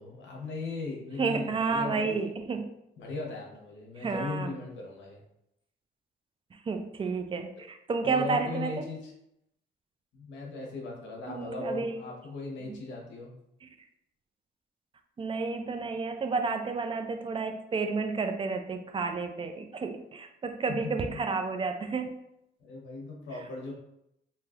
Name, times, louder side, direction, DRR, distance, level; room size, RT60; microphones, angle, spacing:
voice 1, 0.0-2.1 3.0-5.2 7.6-7.7 8.0-9.1 10.1-13.4 20.7-21.2 22.6-23.7, left 3 dB, 70° left, 0 dB, 0.8 m, -38 dB
voice 2, 1.2-2.7 4.0-4.5 6.7-8.7 11.3-12.0 13.6-13.7 15.2-22.2, right 4 dB, 25° right, 6 dB, 0.4 m, -31 dB
3.2 x 2.7 x 2.4 m, 0.81 s
cardioid pair, 90°, 20 cm